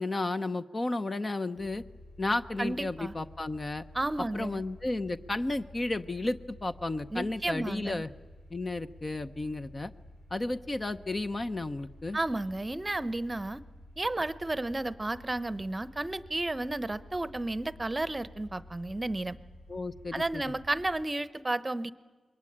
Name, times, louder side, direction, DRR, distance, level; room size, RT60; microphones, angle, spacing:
voice 1, 0.0-1.8 2.2-3.8 4.3-8.1 8.5-9.9 10.3-12.2 19.7-20.5, left 2 dB, 30° left, 10 dB, 0.7 m, -33 dB
sound 1, 1.6-21.0, left 1 dB, 80° left, 5.2 m, -52 dB
voice 2, 2.6-3.1 3.9-4.6 7.1-8.0 12.1-13.6 14.0-19.4 20.1-21.9, right 2 dB, 20° right, 15 dB, 0.9 m, -32 dB
27.0 x 22.0 x 8.8 m, 1.4 s
cardioid pair, 95°, 0 cm